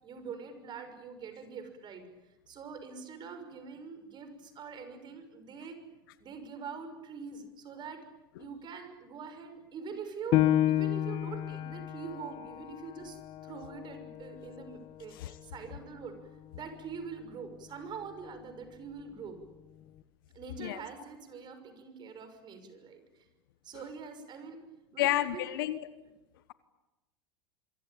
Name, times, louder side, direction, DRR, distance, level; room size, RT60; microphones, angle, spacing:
voice 1, 0.0-2.1 2.5-5.8 6.2-8.1 8.4-16.2 16.5-19.4 20.3-23.2 23.6-24.6 24.9-25.4, right 5 dB, 40° right, 8 dB, 6.1 m, -44 dB
Piano, 10.3-15.5 16.0-16.1 16.7-17.2, left 13 dB, 50° left, 1.7 m, -31 dB
voice 2, 25.0-25.9, left 14 dB, 70° left, 14 dB, 1.2 m, -30 dB
26.5 x 24.0 x 8.7 m, 1.1 s
hypercardioid pair, 90°, 12 cm